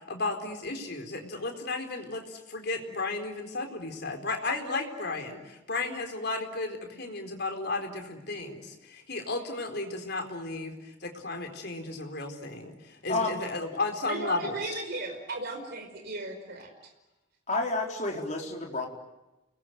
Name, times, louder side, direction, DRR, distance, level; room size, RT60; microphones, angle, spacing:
voice 1, 0.1-14.8, left 3 dB, 50° left, 5 dB, 4.3 m, -34 dB
voice 2, 13.1-13.4 17.5-18.9, left 2 dB, 35° left, 1 dB, 4.5 m, -30 dB
voice 3, 14.1-16.7, right 2 dB, 50° right, 3 dB, 5.0 m, -36 dB
29.5 x 21.5 x 9.4 m, 1.0 s
head